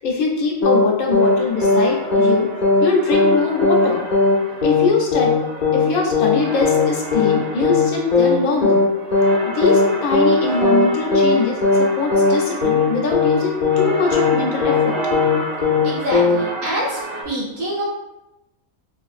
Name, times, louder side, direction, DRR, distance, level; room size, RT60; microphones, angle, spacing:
voice 1, 0.0-2.5 2.8-4.1 4.6-5.3 5.7-8.8 9.5-15.0, left 4 dB, 90° left, 0 dB, 1.1 m, -22 dB
sound 1, 0.6-0.9 1.1-1.4 1.6-2.4 2.6-2.9 3.1-3.4 3.6-3.9 4.1-4.4 4.6-4.9 5.1-5.4 5.6-5.9 6.1-6.4 6.6-6.9 7.1-7.4 7.6-8.4 8.6-8.9 9.1-9.4 9.6-9.9 10.1-10.4 10.6-10.9 11.1-11.4 11.6-11.9 12.1-12.4 12.6-12.9 13.1-13.4 13.6-13.9 14.1-14.4 14.6-14.9 15.1-15.4 15.6-15.9 16.1-16.4, left 3 dB, 60° left, 0.5 m, -16 dB
sound 2, 1.2-17.2, right 2 dB, 70° right, 1.1 m, -32 dB
voice 2, 15.8-17.0 17.2-17.8, equal, 50° right, -5 dB, 1.2 m, -25 dB
3.6 x 2.5 x 2.4 m, 0.92 s
omnidirectional pair, 1.4 m